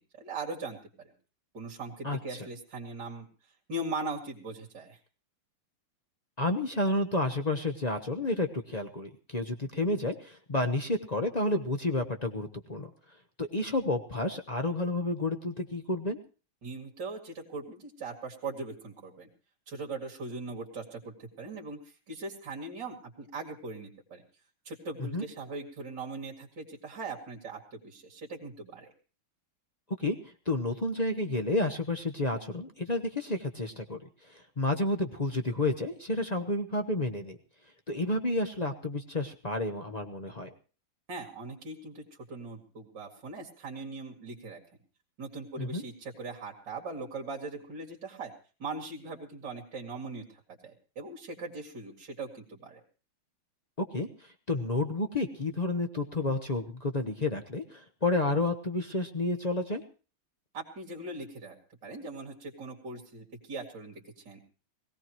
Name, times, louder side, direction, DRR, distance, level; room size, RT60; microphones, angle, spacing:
voice 1, 0.2-0.8 1.5-3.3 3.7-5.0 16.6-19.3 19.7-24.2 24.6-28.9 41.1-44.6 45.2-48.3 48.6-52.8 60.5-61.6 61.8-64.4, right 3 dB, 55° right, -1 dB, 2.8 m, -40 dB
voice 2, 6.4-12.9 13.4-16.2 25.0-25.2 30.0-37.4 37.9-40.5 45.6-45.8 53.8-59.8, left 2 dB, 50° left, 6 dB, 0.4 m, -30 dB
21.5 x 16.5 x 3.0 m, 0.36 s
omnidirectional pair, 2.4 m